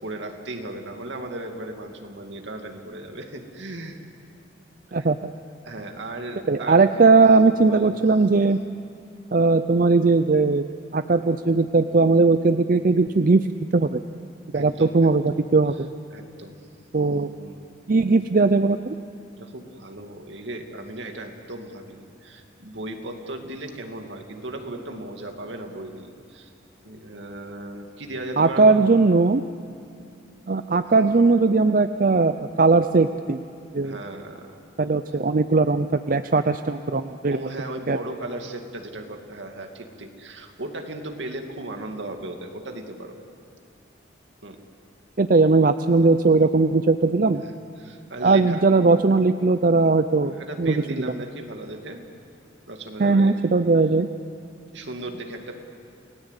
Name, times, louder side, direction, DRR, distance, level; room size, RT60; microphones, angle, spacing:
voice 1, 0.0-4.0 4.9-5.1 5.6-7.1 7.4-8.0 14.5-15.1 16.1-16.7 17.3-17.6 19.4-26.5 26.8-29.0 33.8-34.6 37.3-43.2 44.4-44.6 47.4-48.7 50.3-52.0 52.7-53.3 54.7-55.6, right 1 dB, 70° right, 4 dB, 2.3 m, -36 dB
voice 2, 4.9-5.3 6.5-8.6 9.3-10.6 10.9-13.5 13.7-14.0 14.5-15.9 16.9-17.3 17.9-18.9 28.4-29.4 30.5-33.4 33.7-34.0 34.8-37.4 37.9-38.0 45.2-47.4 48.2-50.3 50.6-51.1 53.0-54.1, right 3 dB, 45° right, 10 dB, 0.5 m, -19 dB
29.0 x 18.0 x 8.2 m, 2.4 s
head